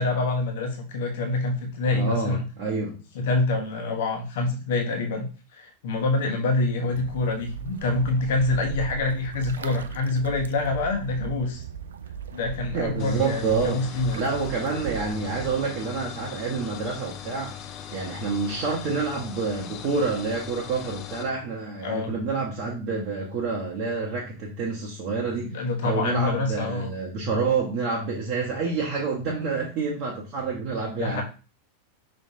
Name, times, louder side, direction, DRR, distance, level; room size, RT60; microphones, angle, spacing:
voice 1, 0.0-2.4 3.1-11.6 12.3-14.2 21.8-22.1 25.4-26.9 31.0-31.2, left 2 dB, 55° left, 3 dB, 1.1 m, -26 dB
voice 2, 1.9-3.0 12.7-13.9 14.1-17.5 17.9-31.2, right 4 dB, 40° right, -4 dB, 1.0 m, -28 dB
sound 1, 6.8-15.7, right 6 dB, 65° right, 0.3 m, -38 dB
sound 2, 13.0-21.3, left 10 dB, 35° left, 0.4 m, -40 dB
5.4 x 3.3 x 2.7 m, 0.34 s
figure-of-eight pair, 90°, 0 cm